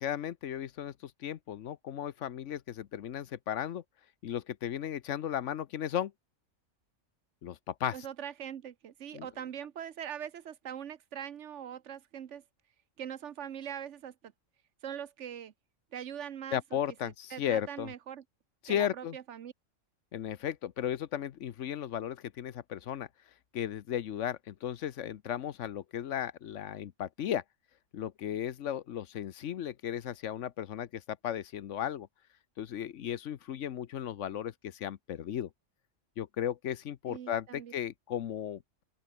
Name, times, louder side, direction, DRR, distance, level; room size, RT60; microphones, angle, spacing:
voice 1, 0.0-3.8 4.2-6.1 7.4-8.0 9.1-9.3 16.5-17.9 18.6-19.2 20.1-23.1 23.5-27.4 27.9-32.1 32.6-35.5 36.2-38.8, left 10 dB, 70° left, 1.1 m, -35 dB
voice 2, 7.9-12.4 13.0-14.3 14.8-15.5 15.9-18.2 18.7-19.5 37.1-37.7, right 9 dB, 65° right, 1.1 m, -42 dB
open air
omnidirectional pair, 1.3 m